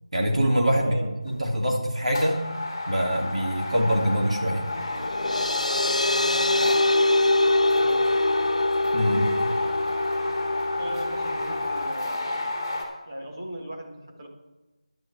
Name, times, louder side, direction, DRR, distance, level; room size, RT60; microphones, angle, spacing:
voice 1, 0.1-1.0 1.2-2.4 2.9-4.7 8.9-9.3, equal, 65° right, 0 dB, 3.1 m, -24 dB
voice 2, 0.8-1.1 5.1-7.5 7.7-8.2 10.8-12.5 13.0-14.3, right 1 dB, 30° right, 0 dB, 1.9 m, -39 dB
sound 1, 1.3-1.6 2.0-12.8, left 2 dB, 20° left, 2.5 m, -31 dB
sound 2, 4.7-11.9, left 2 dB, 85° left, 0.5 m, -24 dB
15.5 x 10.5 x 3.6 m, 1.1 s
figure-of-eight pair, 180°, 4 cm